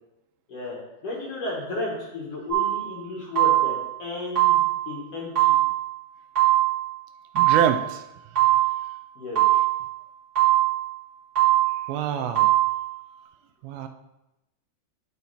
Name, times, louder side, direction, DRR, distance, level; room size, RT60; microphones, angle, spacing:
voice 1, 1.0-5.6 9.2-9.4, left 2 dB, 55° left, -4 dB, 1.9 m, -33 dB
sound 1, 2.5-2.9 3.4-3.9 4.4-4.9 5.4-5.9 6.4-6.9 7.4-7.9 8.4-8.9 9.4-9.9 10.4-10.9 11.4-11.9 12.4-12.9, right 15 dB, 35° right, 3.2 m, -21 dB
voice 2, 7.4-8.0 11.9-12.5 13.6-13.9, right 8 dB, 80° right, 8 dB, 2.3 m, -26 dB
12.0 x 4.1 x 4.1 m, 0.95 s
omnidirectional pair, 4.4 m